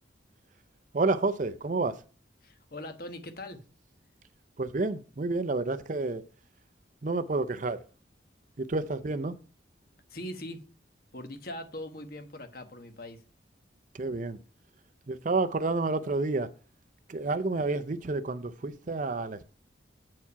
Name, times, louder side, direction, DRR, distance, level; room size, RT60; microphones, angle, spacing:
voice 1, 0.9-2.0 4.6-6.2 7.0-7.8 8.6-9.4 13.9-14.4 15.1-16.5 17.1-19.4, right 3 dB, 45° right, 0.5 m, -29 dB
voice 2, 2.4-3.6 10.1-10.6 11.1-13.2, left 1 dB, 50° left, 1.2 m, -41 dB
8.4 x 4.6 x 5.6 m
head